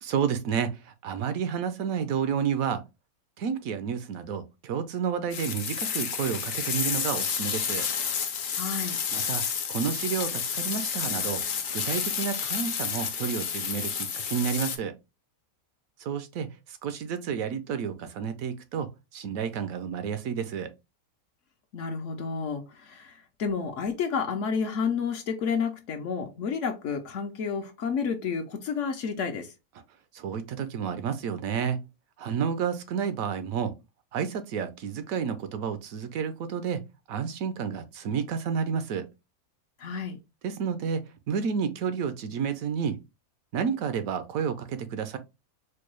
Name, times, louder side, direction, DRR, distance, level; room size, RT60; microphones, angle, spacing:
voice 1, 0.0-2.8 3.4-7.9 9.1-9.4 9.7-11.4 11.7-14.9 16.0-20.7 30.1-31.8 32.2-33.7 34.1-39.1 40.4-43.0 43.5-45.2, right 7 dB, 70° right, 0.9 m, -30 dB
sound 1, 5.3-14.8, left 7 dB, 85° left, 0.4 m, -30 dB
voice 2, 8.5-9.0 21.7-29.5 39.8-40.2, left 6 dB, 65° left, 0.9 m, -30 dB
4.4 x 2.2 x 3.0 m
omnidirectional pair, 1.6 m